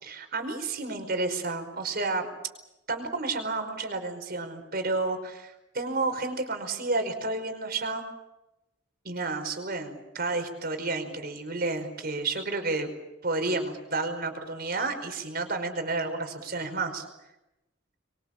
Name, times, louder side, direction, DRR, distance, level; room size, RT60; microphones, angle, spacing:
voice 1, 0.0-2.3 2.9-8.0 9.0-12.9 13.2-17.0, right 3 dB, 50° right, 6 dB, 5.1 m, -31 dB
25.5 x 23.5 x 7.4 m, 0.92 s
head